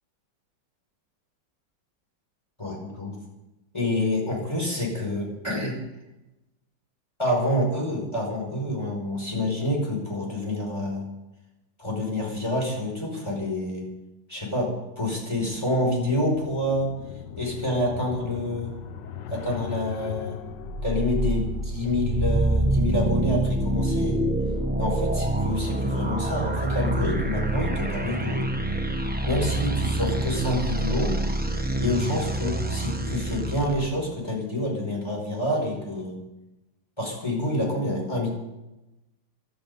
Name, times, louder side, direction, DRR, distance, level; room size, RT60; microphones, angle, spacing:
voice 1, 2.6-3.2 3.7-5.8 7.2-11.0 11.8-13.9 14.3-14.7 15.0-16.9 17.4-18.7 19.3-20.4 20.8-24.2 24.8-28.5 29.2-31.1 31.8-36.2 37.0-38.3, left 1 dB, 15° left, -1 dB, 5.1 m, -27 dB
sound 1, 15.2-24.0, left 8 dB, 70° left, 1.5 m, -40 dB
sound 2, 20.6-33.9, right 2 dB, 5° right, 0.7 m, -26 dB
17.5 x 12.5 x 5.4 m, 0.98 s
omnidirectional pair, 2.1 m